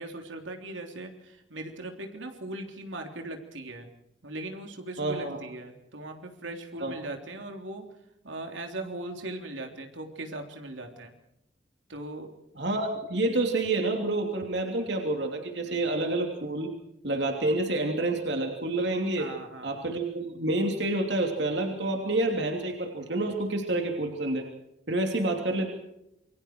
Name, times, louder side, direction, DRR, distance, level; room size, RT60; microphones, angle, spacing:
voice 1, 0.0-3.9 4.2-7.8 8.2-11.2 11.9-12.3 15.7-15.8 19.2-19.8, right 2 dB, 80° right, 4 dB, 3.5 m, -39 dB
voice 2, 5.0-5.4 6.8-6.9 12.6-16.7 17.0-19.3 19.6-24.4 24.9-25.7, right 2 dB, 60° right, 3 dB, 3.0 m, -28 dB
27.5 x 24.0 x 4.6 m, 0.83 s
head